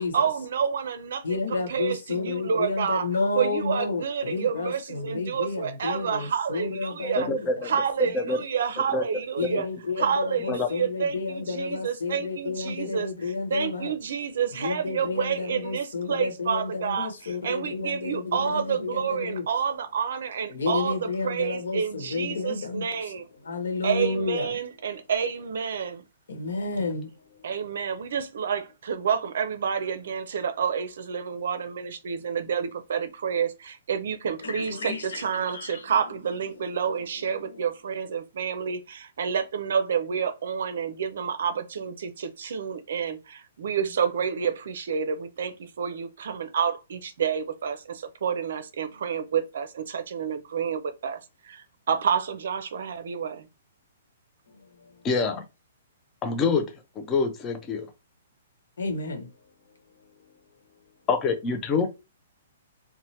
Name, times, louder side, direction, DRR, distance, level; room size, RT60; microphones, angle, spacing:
voice 1, 0.1-3.1 3.3-7.3 7.6-9.7 10.0-23.3 23.8-26.1 27.4-53.5, right 7 dB, 60° right, 0.5 m, -29 dB
voice 2, 1.2-7.5 9.4-13.9 14.6-19.4 20.5-23.1 23.4-24.5 26.3-27.4 34.4-35.8 37.4-37.6 54.5-54.6 54.9-55.0 58.8-59.3, left 3 dB, 85° left, 1.0 m, -31 dB
voice 3, 7.2-7.7 8.1-8.4 8.9-9.0 9.4-9.6 10.5-10.7 55.0-55.4 56.2-56.6 57.0-57.9 61.1-61.9, left 4 dB, 15° left, 0.3 m, -25 dB
3.1 x 2.1 x 2.8 m
hypercardioid pair, 175°, 0 cm